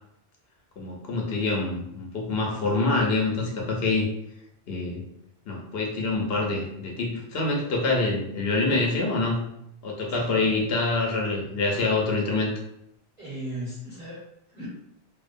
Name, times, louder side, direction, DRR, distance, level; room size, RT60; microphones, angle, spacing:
voice 1, 0.8-4.1 4.7-5.0 5.5-9.5 9.8-12.5, left 3 dB, 65° left, -1 dB, 0.8 m, -26 dB
voice 2, 10.2-10.6 13.2-14.7, right 1 dB, 5° right, -9 dB, 0.8 m, -37 dB
2.6 x 2.2 x 2.5 m, 0.80 s
omnidirectional pair, 1.1 m